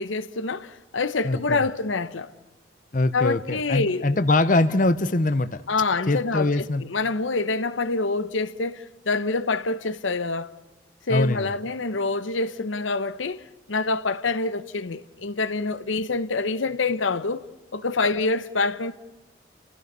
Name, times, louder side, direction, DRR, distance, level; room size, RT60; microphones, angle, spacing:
voice 1, 0.0-2.3 3.1-4.2 5.7-10.5 11.1-17.5 17.7-18.9, left 3 dB, 90° left, 1.0 m, -26 dB
voice 2, 1.2-1.6 2.9-5.6 6.1-6.8 11.1-11.5, left 2 dB, 45° left, 0.8 m, -22 dB
30.0 x 16.5 x 6.8 m
head